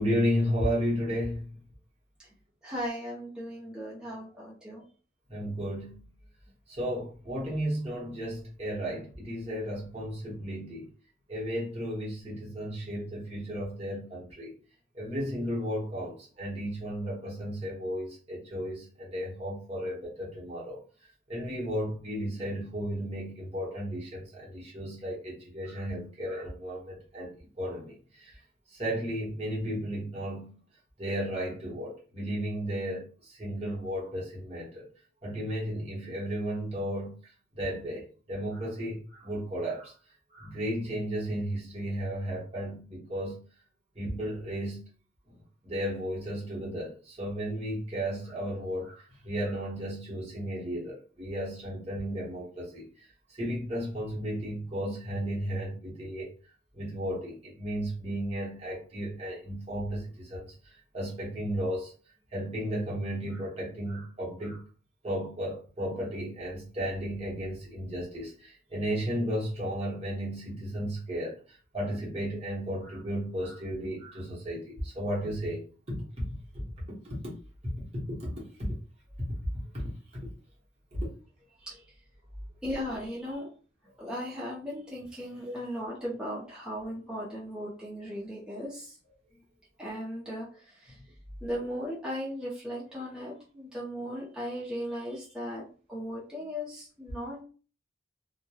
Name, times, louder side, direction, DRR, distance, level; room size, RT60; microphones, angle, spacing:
voice 1, 0.0-1.5 5.3-6.0 6.7-10.9 11.3-14.6 14.9-20.8 21.3-28.4 28.7-30.6 31.0-34.8 35.2-39.9 40.3-43.4 44.0-44.8 45.6-52.9 53.3-56.3 56.7-61.9 62.3-64.6 65.0-76.3 76.5-76.6 77.0-77.3 78.1-78.3 78.6-78.8 79.2-79.4 79.7-80.3 80.9-81.1 85.4-85.6, equal, 30° right, 0.8 m, -34 dB
voice 2, 2.6-4.8 81.6-81.8 82.6-83.5 84.0-88.9 89.8-91.0 91.4-97.4, equal, 5° right, 0.6 m, -37 dB
2.9 x 2.1 x 2.2 m
head